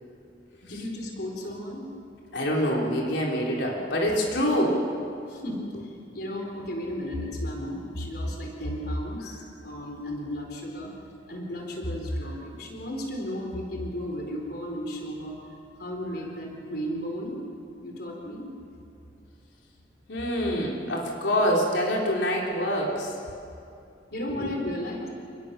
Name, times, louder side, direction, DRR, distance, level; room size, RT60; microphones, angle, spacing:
voice 1, 0.7-1.9 5.3-10.9 11.3-15.4 15.8-17.4 17.8-18.5 24.1-25.1, equal, 60° left, 1 dB, 4.4 m, -34 dB
voice 2, 2.3-4.8 20.1-23.2 24.3-24.5, equal, 90° left, -2 dB, 4.0 m, -26 dB
29.5 x 20.5 x 6.9 m, 2.5 s
head